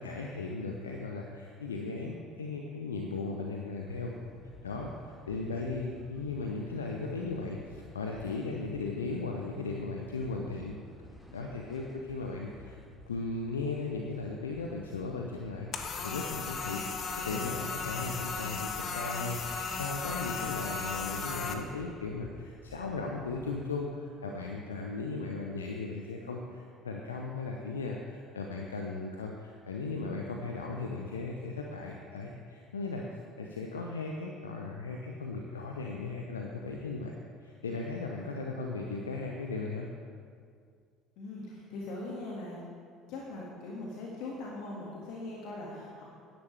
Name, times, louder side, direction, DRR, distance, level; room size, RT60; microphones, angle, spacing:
voice 1, 0.0-4.1 4.6-10.8 11.3-12.8 13.1-33.0 33.4-37.1 37.4-39.9, left 3 dB, 80° left, 1 dB, 0.8 m, -37 dB
sound 1, 3.8-23.6, right 1 dB, 5° left, 2.1 m, -54 dB
sound 2, 15.7-21.5, left 5 dB, 45° left, 1.2 m, -36 dB
voice 2, 41.2-42.6 43.1-46.0, left 2 dB, 60° left, -4 dB, 2.0 m, -40 dB
16.5 x 10.5 x 3.4 m, 2.2 s
figure-of-eight pair, 60°, 0 cm